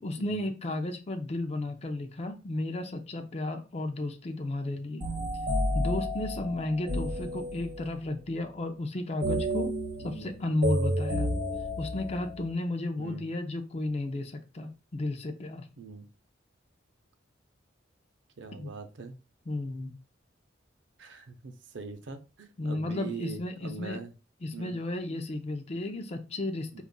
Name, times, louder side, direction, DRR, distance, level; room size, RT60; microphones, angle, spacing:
voice 1, 0.0-5.1 5.7-9.7 10.0-11.3 11.8-15.7 18.6-18.7 19.5-20.0 22.6-24.0 24.4-26.8, left 2 dB, 35° left, 6 dB, 0.4 m, -33 dB
sound 1, 5.0-8.0 9.2-12.5, equal, 50° right, 1.0 m, -31 dB
voice 2, 10.0-10.3 13.0-13.3 15.8-16.1 18.4-19.1 21.0-24.1 24.5-24.8 26.7-26.8, right 5 dB, 75° right, 8 dB, 0.6 m, -42 dB
5.1 x 2.4 x 2.3 m, 0.32 s
head